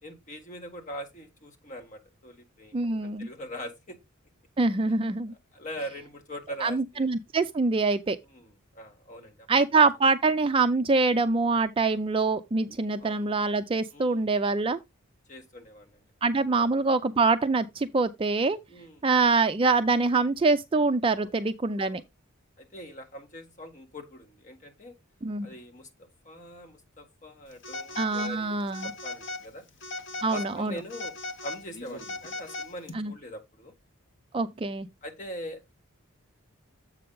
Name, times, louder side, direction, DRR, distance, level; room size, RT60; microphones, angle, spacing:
voice 1, 0.0-4.0 5.5-7.1 8.3-9.5 13.0-13.2 13.9-14.3 15.3-16.0 18.7-19.1 21.2-21.3 21.8-22.0 22.6-24.9 25.4-29.6 30.3-33.7 35.0-35.7, equal, 35° left, 1.4 m, -42 dB
voice 2, 2.7-3.3 4.6-5.3 6.6-8.2 9.5-14.8 16.2-18.6 19.0-22.0 25.2-25.5 28.0-28.9 30.2-30.8 32.9-33.1 34.3-34.9, right 3 dB, 25° right, 0.3 m, -25 dB
Telephone, 27.6-28.4 28.7-29.5 29.8-30.5 30.9-32.9, left 3 dB, 55° left, 1.1 m, -38 dB
7.6 x 5.5 x 3.7 m
head